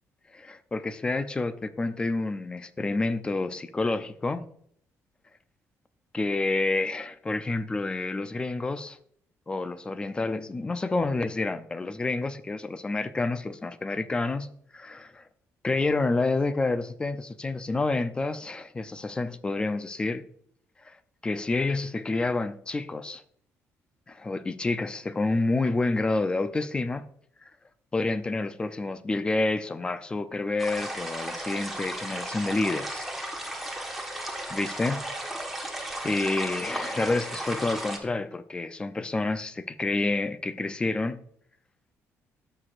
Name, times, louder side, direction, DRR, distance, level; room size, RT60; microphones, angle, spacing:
voice 1, 0.3-4.4 6.1-9.0 9.5-14.5 14.7-15.2 15.6-20.2 20.8-21.0 21.2-23.2 24.1-27.0 27.9-33.0 34.5-35.1 36.0-41.2, left 3 dB, 15° left, 0.5 m, -28 dB
sound 1, 30.6-38.0, right 1 dB, 5° right, 1.2 m, -35 dB
14.0 x 6.0 x 2.5 m
cardioid pair, 150°, 6 cm